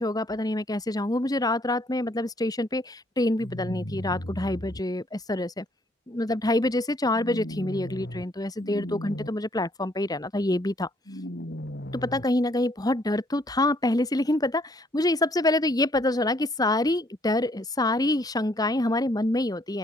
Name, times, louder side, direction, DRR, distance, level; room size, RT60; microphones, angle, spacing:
voice 1, 0.0-5.6 6.1-10.9 11.9-19.8, left 1 dB, 15° left, 1.1 m, -26 dB
sound 1, 3.4-4.8 7.1-8.2 8.6-9.3 11.1-12.2, equal, 45° left, 3.6 m, -36 dB
open air
head